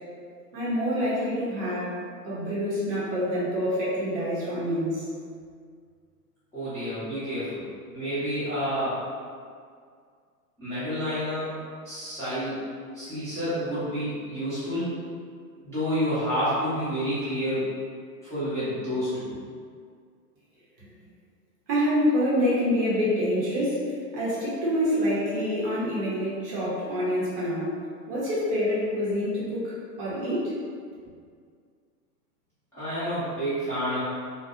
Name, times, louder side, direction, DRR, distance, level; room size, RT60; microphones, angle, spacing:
voice 1, 0.5-2.0 2.2-5.1 20.8-20.9 21.7-27.8 28.1-30.5, equal, 35° right, -8 dB, 0.6 m, -26 dB
voice 2, 6.5-7.6 7.9-9.0 10.6-11.5 11.8-14.9 15.6-17.6 18.2-19.3 32.7-34.0, equal, 5° left, -18 dB, 0.6 m, -29 dB
2.6 x 2.0 x 2.4 m, 2.1 s
hypercardioid pair, 135°, 48 cm